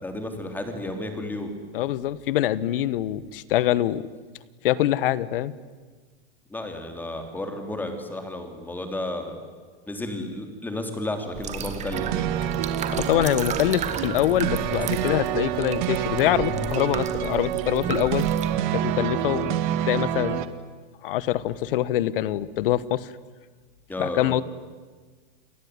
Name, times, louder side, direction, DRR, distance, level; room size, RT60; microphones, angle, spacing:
voice 1, 0.0-1.6 6.5-9.4 9.9-12.3 23.9-24.3, left 1 dB, 5° left, 6 dB, 3.5 m, -32 dB
voice 2, 1.7-4.0 4.6-5.5 12.9-18.3 18.7-19.5 19.9-20.4 21.0-23.1 24.0-24.4, left 13 dB, 65° left, 18 dB, 1.3 m, -24 dB
sound 1, 11.3-18.5, right 6 dB, 25° right, 2.3 m, -33 dB
sound 2, 11.9-20.5, right 11 dB, 55° right, 2.0 m, -27 dB
28.5 x 21.0 x 9.8 m, 1.5 s
supercardioid pair, 150°, 29 cm